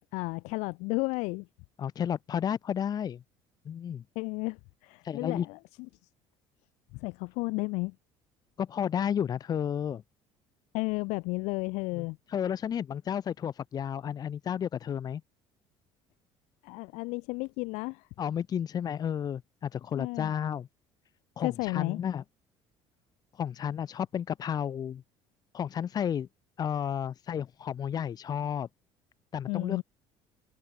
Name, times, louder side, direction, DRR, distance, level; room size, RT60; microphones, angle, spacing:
voice 1, 0.1-1.5 4.1-5.6 6.9-7.9 10.7-12.2 16.6-18.1 20.0-20.3 21.4-22.0 29.5-29.8, left 27 dB, 85° left, 3.0 m, -33 dB
voice 2, 1.8-3.2 3.6-4.0 5.0-5.5 8.6-10.0 11.9-15.2 18.2-20.7 21.4-22.2 23.3-25.0 25.5-26.3 26.6-28.7 29.3-29.8, left 8 dB, 35° left, 1.3 m, -32 dB
open air
cardioid pair, 135°, 11 cm